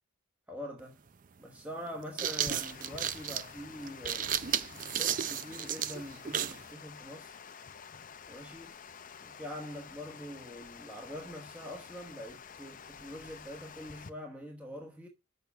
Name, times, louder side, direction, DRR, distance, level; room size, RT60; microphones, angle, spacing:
voice 1, 0.5-1.0 1.4-4.3 4.7-7.4 8.3-8.7 9.2-15.1, equal, 5° right, 1.0 m, -44 dB
sound 1, 0.8-0.9 1.9-6.6, right 9 dB, 40° right, 0.4 m, -33 dB
Water, 2.2-14.1, left 6 dB, 40° left, 0.6 m, -49 dB
6.7 x 5.9 x 6.9 m
head